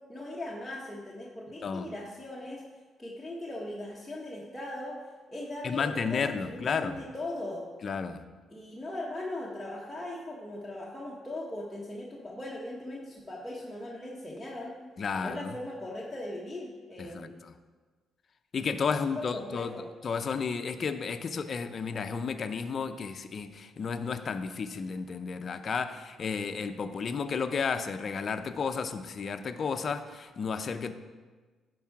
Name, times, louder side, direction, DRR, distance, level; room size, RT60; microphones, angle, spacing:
voice 1, 0.1-2.6 3.0-5.0 5.3-7.7 8.5-14.7 15.2-17.4 19.2-19.9, left 1 dB, 10° left, -5 dB, 1.2 m, -39 dB
voice 2, 1.6-1.9 5.6-7.0 7.8-8.2 15.0-15.5 17.0-17.3 18.5-19.7 20.0-30.9, left 5 dB, 50° left, 9 dB, 0.5 m, -32 dB
10.0 x 4.7 x 4.8 m, 1.4 s
cardioid pair, 90°, 0 cm